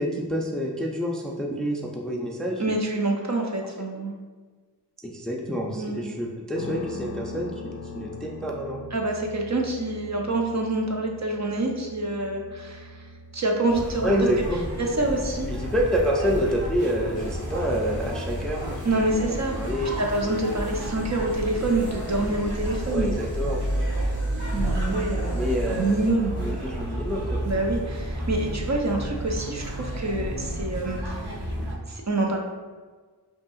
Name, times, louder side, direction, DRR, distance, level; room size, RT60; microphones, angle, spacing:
voice 1, 0.0-2.6 3.9-4.0 5.0-8.8 14.0-14.6 15.5-19.2 19.6-20.0 22.9-23.6 25.3-26.0 26.4-27.4, equal, ahead, -1 dB, 0.4 m, -28 dB
voice 2, 2.6-4.1 5.7-6.0 8.9-13.0 13.3-14.1 14.8-15.5 18.8-19.6 20.0-23.1 24.5-26.4 27.4-31.2 31.9-32.4, right 2 dB, 45° right, 0 dB, 0.6 m, -26 dB
sound 1, 6.5-22.4, left 2 dB, 65° left, 0.5 m, -44 dB
sound 2, 13.7-31.7, right 1 dB, 75° right, 0.9 m, -31 dB
sound 3, 17.1-26.1, right 1 dB, 30° right, 1.5 m, -37 dB
5.2 x 2.8 x 2.4 m, 1.4 s
wide cardioid pair, 55°, 40 cm